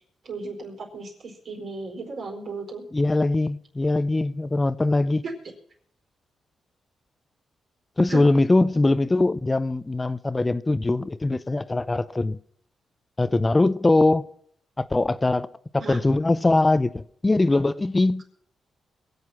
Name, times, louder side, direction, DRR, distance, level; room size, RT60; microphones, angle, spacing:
voice 1, 0.2-2.8 5.2-5.3 8.1-8.2 15.8-16.0, right 3 dB, 65° right, 4.5 m, -35 dB
voice 2, 2.9-5.2 8.0-12.4 13.2-14.2 14.8-15.5 15.9-18.2, left 2 dB, 25° left, 0.5 m, -21 dB
22.5 x 8.0 x 5.8 m
cardioid pair, 70°, 0 cm